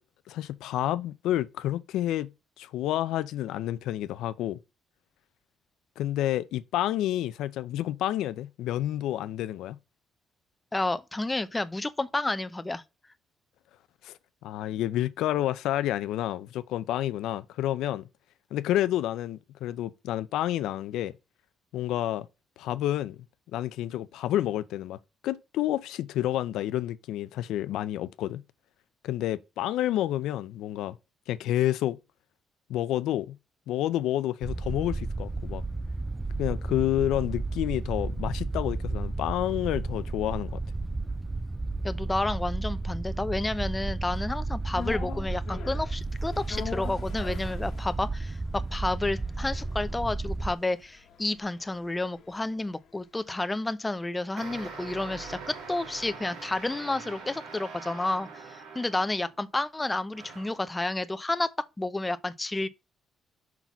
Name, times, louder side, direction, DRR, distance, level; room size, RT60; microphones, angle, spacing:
voice 1, 0.3-2.3 2.6-4.6 6.0-9.8 14.0-14.2 14.4-18.0 18.5-21.1 21.7-22.3 22.6-23.2 23.5-25.0 25.2-28.4 29.0-31.0 31.3-32.0 32.7-33.4 33.7-35.6 36.4-40.6, left 13 dB, 90° left, 0.5 m, -29 dB
voice 2, 10.7-12.8 41.8-61.5 61.8-62.7, left 2 dB, 15° left, 0.7 m, -30 dB
sound 1, 34.4-50.5, right 3 dB, 15° right, 0.3 m, -33 dB
sound 2, 44.7-53.0 53.3-53.4, left 7 dB, 65° left, 1.3 m, -44 dB
sound 3, 54.4-59.4 60.1-60.7, right 4 dB, 80° right, 3.0 m, -43 dB
5.9 x 3.9 x 5.9 m
cardioid pair, 90°, 0 cm